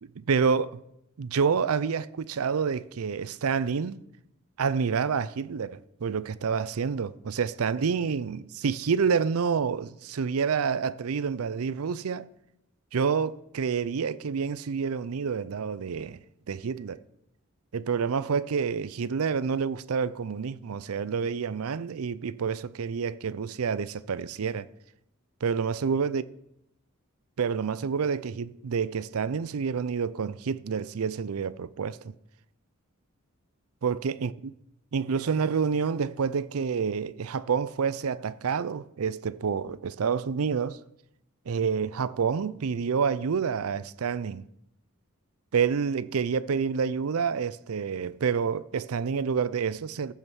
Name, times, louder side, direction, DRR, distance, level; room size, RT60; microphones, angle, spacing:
voice 1, 0.0-0.8 1.2-4.0 4.6-12.3 12.9-16.2 16.5-17.0 17.7-24.7 25.4-26.2 27.4-32.1 33.8-34.3 34.9-40.8 41.5-44.4 45.5-50.1, right 6 dB, 80° right, 0.5 m, -28 dB
14.5 x 5.6 x 6.2 m
head